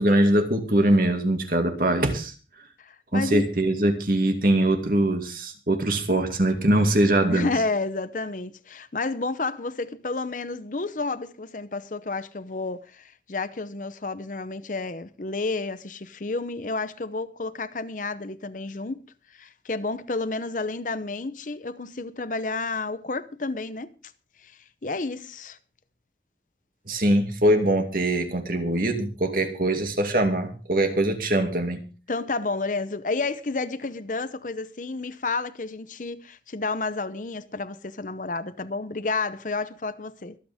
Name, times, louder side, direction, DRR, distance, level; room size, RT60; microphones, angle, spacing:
voice 1, 0.0-2.3 3.1-7.5 26.9-31.8, right 1 dB, 55° right, 2.3 m, -22 dB
voice 2, 2.8-3.5 7.3-19.1 19.3-23.9 24.4-25.6 32.1-40.4, left 3 dB, 45° left, 0.8 m, -31 dB
24.5 x 8.7 x 3.6 m
head